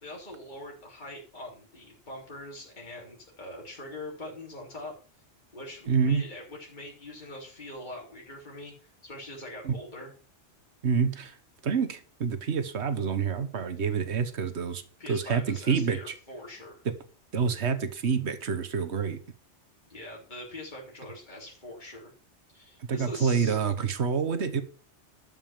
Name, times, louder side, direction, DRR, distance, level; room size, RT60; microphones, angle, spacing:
voice 1, 0.0-4.9 5.5-8.7 9.0-10.1 15.0-16.8 19.9-22.1 22.5-23.6, left 1 dB, 40° left, 3.5 m, -43 dB
voice 2, 5.9-6.2 9.6-9.8 10.8-11.4 11.6-14.8 15.1-16.1 16.8-16.9 17.3-19.2 22.9-24.6, right 6 dB, 70° right, 1.6 m, -27 dB
12.5 x 5.6 x 7.4 m
omnidirectional pair, 1.2 m